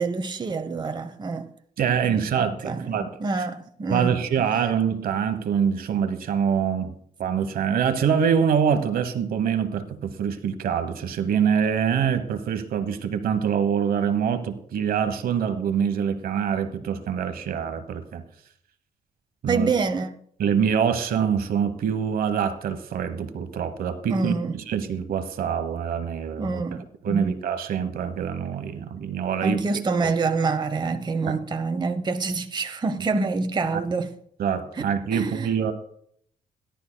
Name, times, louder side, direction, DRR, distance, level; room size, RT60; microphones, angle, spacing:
voice 1, 0.0-1.5 2.1-4.2 19.5-20.1 24.1-24.6 26.4-27.4 29.4-34.1 34.7-34.8 35.1-35.7, right 4 dB, 30° right, 0.9 m, -27 dB
voice 2, 1.8-3.1 3.9-6.9 7.2-18.2 19.4-19.7 20.4-26.6 27.0-29.6 30.0-30.1 31.3-31.4 34.4-35.7, right 7 dB, 70° right, 1.1 m, -25 dB
16.5 x 11.5 x 2.2 m
cardioid pair, 80°, 16 cm